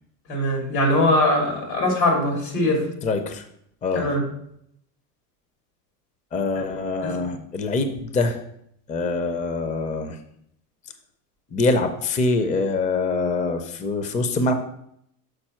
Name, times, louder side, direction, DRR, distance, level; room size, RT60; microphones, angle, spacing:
voice 1, 0.3-2.9 3.9-4.2 7.0-7.2, left 1 dB, 90° left, 1 dB, 2.6 m, -21 dB
voice 2, 3.0-3.4 3.8-4.1 6.3-8.4 8.9-10.2 11.5-14.5, left 3 dB, 15° left, 8 dB, 0.5 m, -24 dB
6.5 x 4.3 x 4.3 m, 0.74 s
supercardioid pair, 100°, 50 cm